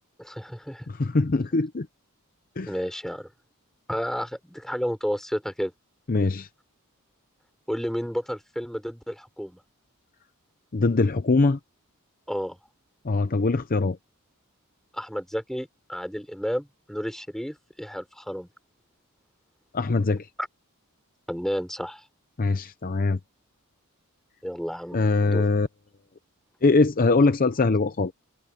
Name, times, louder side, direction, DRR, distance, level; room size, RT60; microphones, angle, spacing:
voice 1, 0.2-0.9 2.7-3.3 3.9-5.7 7.7-9.6 12.3-12.6 14.9-18.5 20.4-20.5 21.3-22.0 24.4-25.5, equal, ahead, 4.7 m, -31 dB
voice 2, 0.9-1.9 2.6-2.7 6.1-6.5 10.7-11.6 13.0-14.0 19.7-20.3 22.4-23.2 24.9-25.7 26.6-28.1, left 3 dB, 40° left, 0.6 m, -22 dB
head